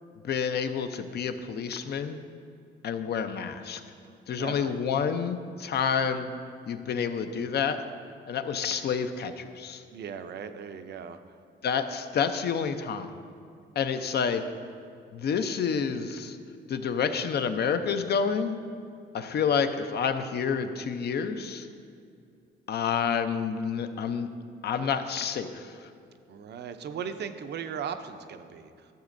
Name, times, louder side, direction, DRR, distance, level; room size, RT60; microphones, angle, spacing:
voice 1, 0.2-2.2 2.8-3.8 4.3-6.3 6.7-7.8 8.3-9.8 11.6-13.1 13.8-14.4 15.1-16.4 16.7-18.5 19.1-21.7 22.7-24.3 24.6-25.7, left 6 dB, 55° left, 9 dB, 0.6 m, -29 dB
voice 2, 4.3-4.7 9.9-11.2 26.3-28.9, right 7 dB, 60° right, 9 dB, 0.6 m, -38 dB
13.0 x 7.3 x 2.6 m, 2.4 s
cardioid pair, 90°, 20 cm